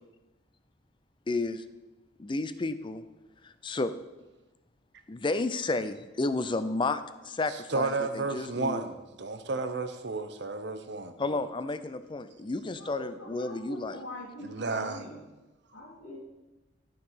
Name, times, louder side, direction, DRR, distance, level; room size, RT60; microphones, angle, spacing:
voice 1, 1.3-1.6 2.2-3.0 3.4-3.9 5.1-8.8 11.2-14.0, left 3 dB, 25° left, 12 dB, 0.4 m, -32 dB
voice 2, 7.7-11.1 14.4-15.0, right 3 dB, 60° right, 8 dB, 0.8 m, -32 dB
voice 3, 12.8-15.2 15.7-16.2, left 1 dB, 90° left, -7 dB, 2.2 m, -43 dB
12.5 x 4.7 x 5.6 m, 1.1 s
head